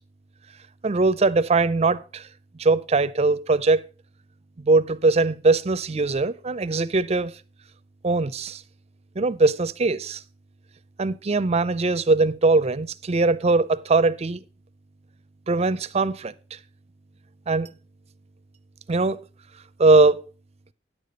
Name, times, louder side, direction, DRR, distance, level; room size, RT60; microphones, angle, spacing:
voice 1, 0.8-2.3 2.6-3.8 4.6-7.3 8.0-8.6 9.2-10.2 11.0-14.4 15.5-16.3 17.5-17.7 18.9-19.2 19.8-20.2, right 3 dB, 35° right, 0.5 m, -21 dB
9.7 x 6.8 x 5.2 m
head